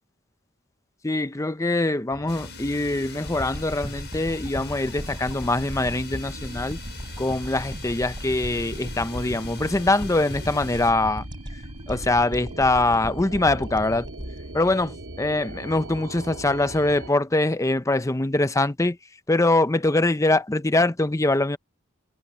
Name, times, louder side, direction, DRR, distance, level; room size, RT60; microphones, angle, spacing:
voice 1, 1.0-6.8 7.2-11.2 11.9-14.1 14.5-14.9 15.2-19.0 19.3-21.6, left 2 dB, 15° left, 0.6 m, -23 dB
sound 1, 2.1-17.1, right 2 dB, 80° right, 2.2 m, -41 dB
sound 2, 2.3-10.9, left 8 dB, 55° left, 7.1 m, -44 dB
sound 3, 3.3-15.6 16.0-16.1, equal, 20° right, 4.7 m, -37 dB
head